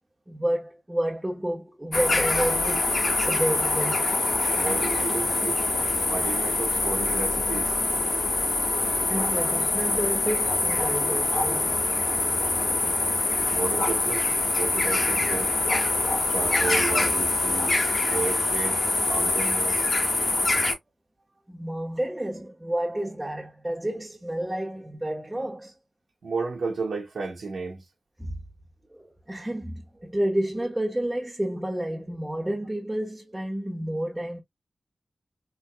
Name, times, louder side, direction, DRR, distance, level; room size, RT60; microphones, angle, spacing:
voice 1, 0.3-4.2 9.1-11.9 21.5-25.7 28.2-28.4 28.9-34.4, right 1 dB, 15° right, 1.2 m, -30 dB
sound 1, 1.9-20.7, left 2 dB, 60° left, 1.6 m, -24 dB
voice 2, 4.5-5.7 6.0-7.7 13.5-14.3 14.6-15.5 16.3-17.8 18.1-19.8 26.2-27.8, right 4 dB, 80° right, 1.2 m, -32 dB
3.5 x 3.1 x 2.2 m
cardioid pair, 50°, 0 cm